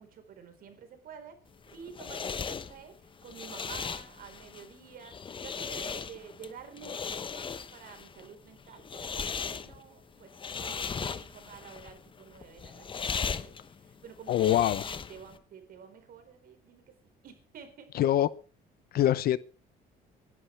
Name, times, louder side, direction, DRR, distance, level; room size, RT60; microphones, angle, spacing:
voice 1, 0.0-1.4 1.7-2.9 3.2-17.9, right 7 dB, 60° right, 4.3 m, -50 dB
sound 1, 1.5-15.4, left 6 dB, 30° left, 1.0 m, -38 dB
voice 2, 14.3-14.8 17.9-18.3 18.9-19.4, left 12 dB, 65° left, 0.8 m, -24 dB
25.0 x 11.5 x 3.4 m
cardioid pair, 110°, 17 cm